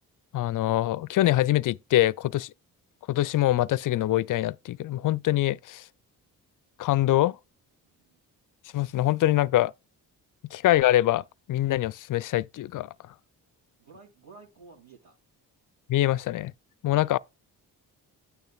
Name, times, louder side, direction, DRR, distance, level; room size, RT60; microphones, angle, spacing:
voice 1, 0.3-2.5 3.1-5.9 6.8-7.4 8.7-9.7 10.5-12.9 15.9-16.5 16.8-17.2, left 14 dB, 45° left, 0.4 m, -24 dB
voice 2, 7.8-8.2 13.8-15.2 17.0-17.2, right 4 dB, 50° right, 2.7 m, -52 dB
9.1 x 8.5 x 2.4 m
hypercardioid pair, 45°, 46 cm